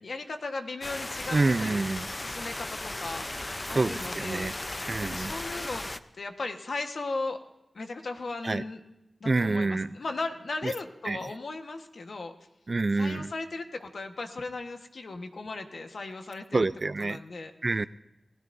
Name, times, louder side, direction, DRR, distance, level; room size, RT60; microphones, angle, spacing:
voice 1, 0.0-1.8 2.2-4.5 5.1-5.8 6.1-7.4 7.7-8.8 9.2-12.3 12.9-16.7 17.0-17.5, left 3 dB, 75° left, 6 dB, 1.3 m, -37 dB
sound 1, 0.8-6.0, left 2 dB, 30° left, 0.6 m, -36 dB
voice 2, 1.3-2.1 3.7-4.5 4.9-5.3 8.4-8.6 9.3-10.0 11.1-11.2 12.7-13.3 16.5-17.2 17.6-17.9, right 3 dB, 50° right, 16 dB, 0.4 m, -27 dB
28.5 x 16.0 x 2.6 m, 0.94 s
wide cardioid pair, 65°, 0 cm